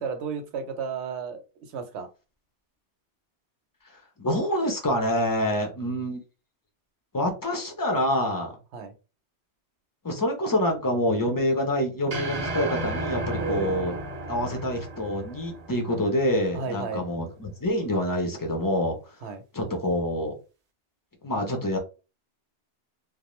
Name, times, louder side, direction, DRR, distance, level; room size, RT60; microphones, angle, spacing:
voice 1, 0.0-1.4 1.7-2.1 8.7-8.9 13.4-13.9 16.5-17.0 19.2-19.4, right 5 dB, 75° right, 8 dB, 0.9 m, -33 dB
voice 2, 3.8-6.2 7.1-8.6 10.0-14.0 14.3-19.0 19.5-20.3 21.2-21.8, left 1 dB, 30° left, 3 dB, 0.4 m, -26 dB
sound 1, 12.1-16.5, right 2 dB, 45° right, 0.6 m, -34 dB
2.4 x 2.0 x 3.0 m, 0.31 s
omnidirectional pair, 1.2 m